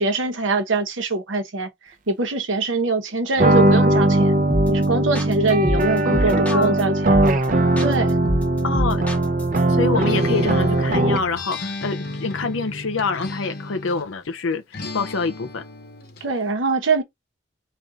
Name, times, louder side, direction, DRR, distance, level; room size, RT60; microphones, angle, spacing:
voice 1, 0.0-1.7 2.1-4.3 4.7-7.2 7.8-8.2 16.2-17.0, right 3 dB, 80° right, 1.0 m, -23 dB
sound 1, 3.4-11.4, right 1 dB, 40° right, 0.5 m, -19 dB
sound 2, 4.5-4.8 5.1-6.8 7.1-7.5 7.8-9.6, equal, 5° left, 0.7 m, -26 dB
voice 2, 8.6-9.0 9.7-14.6 14.9-15.6, left 4 dB, 90° left, 0.7 m, -26 dB
Acoustic guitar, 10.0-14.1 14.7-16.3, left 3 dB, 50° left, 0.8 m, -35 dB
4.0 x 2.4 x 3.6 m
head